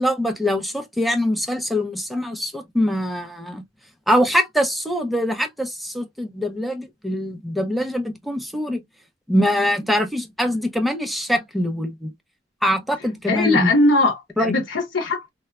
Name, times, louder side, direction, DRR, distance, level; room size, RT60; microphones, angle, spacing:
voice 1, 0.0-3.6 4.1-8.8 9.3-12.1 12.6-13.7 14.4-14.5, equal, ahead, 0.4 m, -23 dB
voice 2, 13.3-15.3, left 2 dB, 90° left, 0.6 m, -20 dB
3.1 x 2.0 x 2.2 m
head